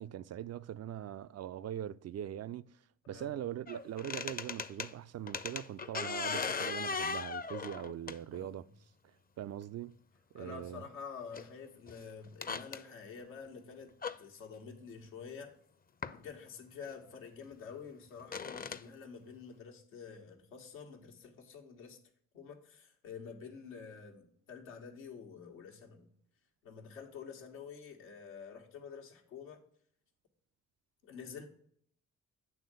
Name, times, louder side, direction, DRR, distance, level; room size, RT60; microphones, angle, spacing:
voice 1, 0.0-2.7 3.1-8.7 9.4-10.0 10.3-10.8, right 11 dB, 40° right, 0.4 m, -41 dB
sound 1, 3.7-4.9 5.3-8.5 9.6-9.7 11.3-11.5 11.9-12.0 12.3-12.8 14.0-14.2 16.0-16.1 16.8-16.9 18.2-18.8, left 5 dB, 20° left, 0.6 m, -38 dB
voice 2, 8.3-8.7 10.3-13.9 14.2-15.5 16.1-22.0 22.3-26.1 26.6-29.6 31.0-31.5, left 6 dB, 85° left, 1.3 m, -48 dB
8.7 x 3.6 x 6.5 m
hypercardioid pair, 40°, 41 cm